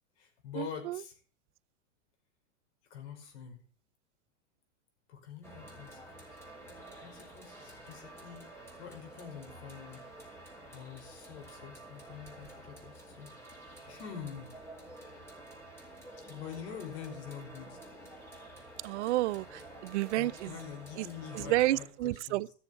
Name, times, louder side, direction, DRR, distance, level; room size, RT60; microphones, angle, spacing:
voice 1, 0.2-1.1 2.9-3.6 5.1-6.0 7.0-8.5 8.8-10.0 10.7-14.6 16.2-17.8 20.2-22.5, left 8 dB, 60° left, 5.4 m, -46 dB
sound 1, 5.4-21.8, right 1 dB, 5° left, 4.2 m, -50 dB
voice 2, 18.8-19.4 19.8-20.5 21.5-22.5, right 17 dB, 65° right, 0.6 m, -29 dB
14.0 x 7.2 x 8.4 m
hypercardioid pair, 130°, 37 cm